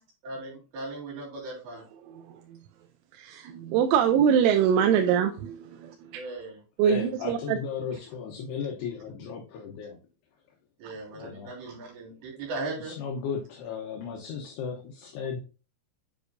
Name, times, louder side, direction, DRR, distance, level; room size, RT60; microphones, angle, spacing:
voice 1, 0.2-1.8 6.1-6.6 10.8-13.0, right 2 dB, 65° right, 5.4 m, -38 dB
voice 2, 2.1-2.6 3.1-6.2 6.8-7.6 10.8-10.9, right 8 dB, 85° right, 3.1 m, -24 dB
voice 3, 6.8-10.0 11.1-11.5 12.8-15.4, left 6 dB, 70° left, 2.7 m, -35 dB
9.6 x 5.0 x 2.6 m
omnidirectional pair, 5.6 m